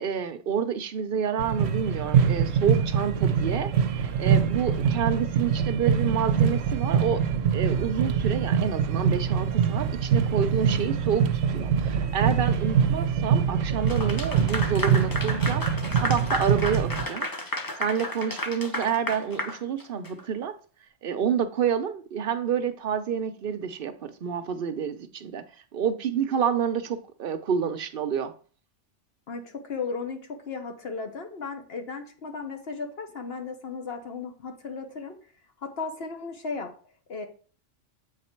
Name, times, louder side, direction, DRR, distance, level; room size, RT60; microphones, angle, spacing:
voice 1, 0.0-7.2 7.5-15.6 15.9-20.5 21.0-25.5 25.7-28.3, right 7 dB, 55° right, 0.7 m, -28 dB
sound 1, 1.4-17.0, right 7 dB, 85° right, 1.0 m, -24 dB
Clapping / Applause, 13.9-20.2, left 1 dB, 25° left, 0.5 m, -33 dB
voice 2, 29.3-35.2 35.6-36.7 37.1-37.3, left 4 dB, 55° left, 1.1 m, -35 dB
7.6 x 4.1 x 4.4 m
omnidirectional pair, 1.3 m